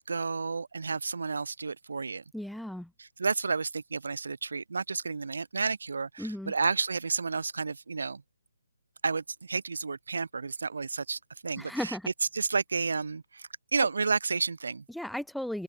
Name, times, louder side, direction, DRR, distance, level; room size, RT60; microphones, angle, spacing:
voice 1, 0.0-2.2 3.0-8.2 9.0-12.0 12.3-14.8, right 4 dB, 70° right, 1.6 m, -31 dB
voice 2, 2.3-2.9 6.2-6.5 11.6-12.1 14.9-15.6, equal, ahead, 1.0 m, -35 dB
open air
figure-of-eight pair, 155°, 0 cm